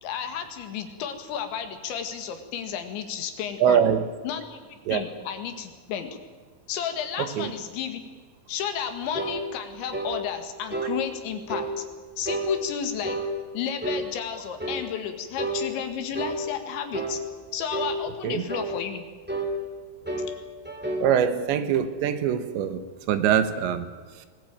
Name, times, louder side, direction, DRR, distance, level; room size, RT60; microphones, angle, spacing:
voice 1, 0.0-3.8 4.2-4.6 4.9-6.2 6.7-8.0 8.5-11.9 12.2-13.2 13.5-17.2 17.5-19.1, left 8 dB, 75° left, 7 dB, 4.2 m, -32 dB
voice 2, 3.6-4.1 4.9-5.0 7.2-7.5 18.2-18.4 21.0-24.3, right 9 dB, 75° right, 11 dB, 3.4 m, -24 dB
sound 1, 9.1-9.4 9.9-10.2 10.7-10.9 11.5-11.7 12.2-12.5 13.0-13.3 13.8-14.1 14.6-14.8 15.4-15.6 16.1-16.4 16.9-17.2 17.7-18.0 18.5-18.7 19.3-19.5 20.1-20.3 20.6-21.1, right 2 dB, 5° right, 2.8 m, -30 dB
24.0 x 20.0 x 9.0 m, 1.5 s
omnidirectional pair, 5.3 m